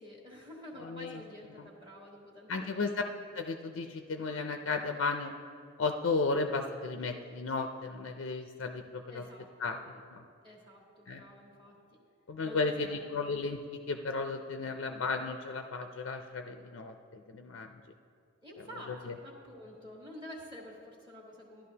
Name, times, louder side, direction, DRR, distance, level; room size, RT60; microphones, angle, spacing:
voice 1, 0.0-3.0 9.1-9.7 10.4-11.7 12.4-13.0 13.2-13.3 18.4-21.7, equal, 20° right, -4 dB, 1.3 m, -49 dB
voice 2, 0.8-1.2 1.6-1.7 2.5-2.9 3.3-5.3 5.8-9.2 9.6-10.2 11.1-11.2 12.3-17.8 18.9-19.1, left 3 dB, 65° left, 5 dB, 0.4 m, -34 dB
13.5 x 11.5 x 2.8 m, 2.3 s
head